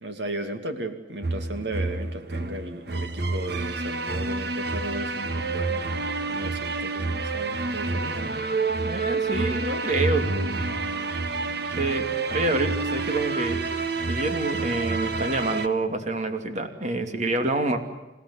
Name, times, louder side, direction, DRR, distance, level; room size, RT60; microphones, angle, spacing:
voice 1, 0.0-6.0 6.3-8.5, right 1 dB, 80° right, 7 dB, 2.5 m, -35 dB
sound 1, 1.2-15.7, right 3 dB, 65° right, 1.6 m, -28 dB
voice 2, 8.7-10.3 11.7-13.6 14.1-17.8, right 2 dB, 45° right, 6 dB, 2.6 m, -27 dB
28.5 x 17.0 x 9.7 m, 1.1 s
head